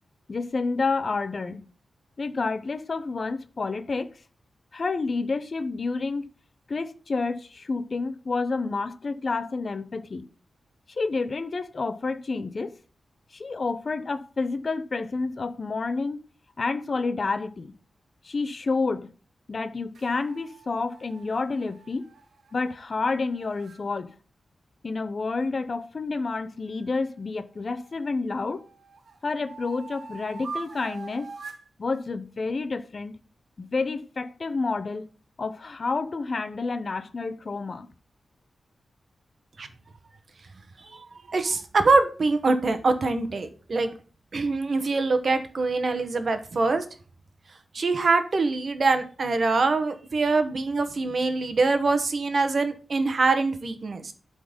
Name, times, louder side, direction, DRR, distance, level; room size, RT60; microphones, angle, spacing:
voice 1, 0.3-1.7 2.2-4.1 4.7-6.3 6.7-10.2 10.9-12.7 13.3-16.2 16.6-17.7 18.2-19.1 19.5-22.0 22.5-24.1 24.8-28.6 29.2-31.3 31.8-33.2 33.6-35.1 35.4-37.9, left 3 dB, 40° left, 0.8 m, -29 dB
sound 1, 19.9-23.8 26.7-28.0 28.5-31.7, right 4 dB, 65° right, 1.3 m, -44 dB
voice 2, 40.8-43.9 44.3-46.8 47.7-54.1, right 3 dB, 45° right, 1.2 m, -24 dB
11.5 x 4.0 x 5.2 m
wide cardioid pair, 145°, 0 cm